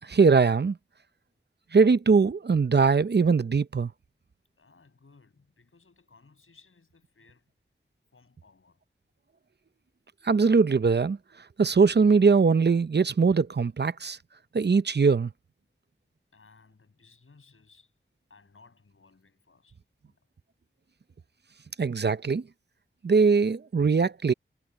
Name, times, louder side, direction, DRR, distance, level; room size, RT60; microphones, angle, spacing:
voice 1, 0.1-0.8 1.7-3.9 10.2-11.2 11.6-14.2 14.5-15.3 21.8-22.4 23.0-24.3, right 5 dB, 55° right, 0.7 m, -21 dB
voice 2, 4.6-7.5 8.1-8.8 16.3-17.9 18.3-20.2, left 4 dB, 85° left, 7.5 m, -59 dB
wide cardioid pair, 50°, 21 cm